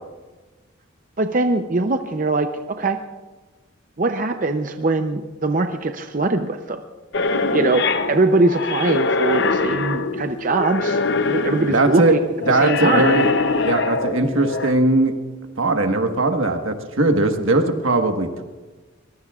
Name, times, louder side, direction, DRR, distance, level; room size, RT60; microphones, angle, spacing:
voice 1, 1.2-3.0 4.0-6.8 7.5-11.0 11.3-12.2 12.5-13.0, right 2 dB, 40° right, 6 dB, 0.6 m, -21 dB
sound 1, 7.1-14.7, left 3 dB, 55° left, 0.8 m, -23 dB
voice 2, 11.7-12.1 12.5-13.3 13.6-15.1 15.6-18.4, right 2 dB, 80° right, 5 dB, 1.5 m, -19 dB
23.0 x 21.5 x 2.4 m, 1.3 s
head